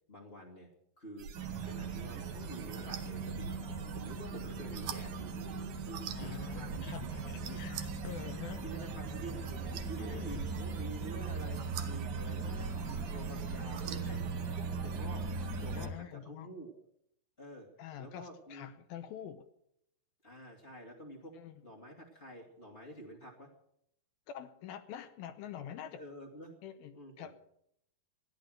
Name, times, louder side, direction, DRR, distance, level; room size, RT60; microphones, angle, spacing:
voice 1, 0.1-0.7 1.0-1.3 1.6-3.6 3.9-5.4 5.8-6.7 7.4-7.6 8.6-9.4 9.7-12.7 13.1-14.2 14.8-15.2 15.6-16.7 17.4-17.7 18.0-18.7 20.2-21.3 21.6-23.5 25.8-26.5 26.9-27.3, right 1 dB, 25° left, -3 dB, 1.4 m, -48 dB
sound 1, 1.2-15.9, right 8 dB, 65° right, 2.0 m, -47 dB
sound 2, 1.3-15.9, right 4 dB, 35° right, 2.9 m, -39 dB
voice 2, 6.2-8.6 10.0-10.5 15.7-16.5 17.8-19.4 21.4-21.5 24.3-26.0 26.6-27.3, left 9 dB, 75° left, 10 dB, 2.5 m, -46 dB
15.0 x 11.0 x 7.7 m, 0.73 s
omnidirectional pair, 4.7 m